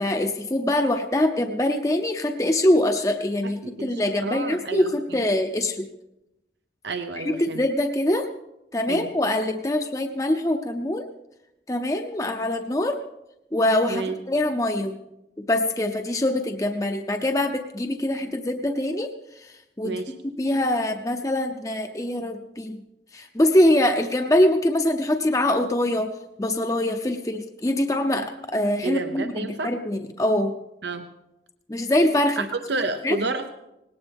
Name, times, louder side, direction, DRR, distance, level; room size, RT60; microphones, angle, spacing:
voice 1, 0.0-5.9 7.2-8.3 8.7-11.1 11.7-13.0 13.5-15.0 15.4-22.8 23.1-30.5 31.7-32.5 33.0-33.2, left 1 dB, 20° left, 5 dB, 0.6 m, -24 dB
voice 2, 3.4-4.9 6.8-7.7 8.9-9.1 13.9-14.1 19.8-20.1 28.8-29.7 30.8-31.1 32.4-33.5, right 3 dB, 85° right, 7 dB, 0.8 m, -30 dB
19.0 x 17.5 x 3.5 m, 0.91 s
head